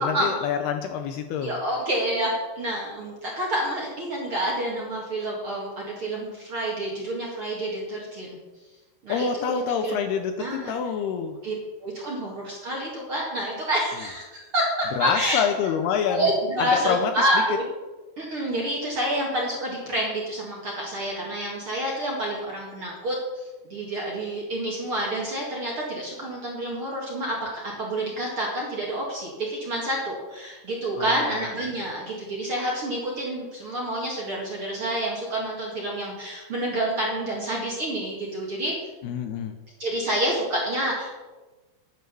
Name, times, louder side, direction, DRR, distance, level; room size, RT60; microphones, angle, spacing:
voice 1, 0.0-1.6 9.1-11.4 15.0-16.3 16.6-17.3 30.9-31.5 39.0-39.6, left 7 dB, 80° left, 6 dB, 2.5 m, -27 dB
voice 2, 1.4-8.4 9.0-9.5 9.8-10.0 10.4-10.7 11.4-11.5 11.8-15.4 16.1-17.6 18.2-27.4 27.8-38.7 39.8-41.1, right 1 dB, 40° right, -3 dB, 2.1 m, -28 dB
10.5 x 9.3 x 6.8 m, 1.2 s
omnidirectional pair, 5.2 m